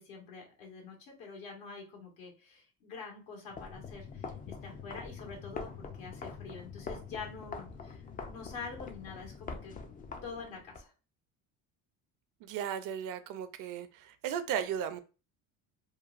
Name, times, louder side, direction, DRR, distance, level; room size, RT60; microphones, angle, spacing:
voice 1, 0.0-9.7 10.2-10.9, left 4 dB, 70° left, 0 dB, 1.4 m, -46 dB
sound 1, 3.5-10.8, left 5 dB, 25° left, 0.3 m, -44 dB
voice 2, 12.4-15.0, right 9 dB, 60° right, 11 dB, 0.5 m, -36 dB
3.0 x 2.2 x 2.4 m, 0.33 s
cardioid pair, 105°, 37 cm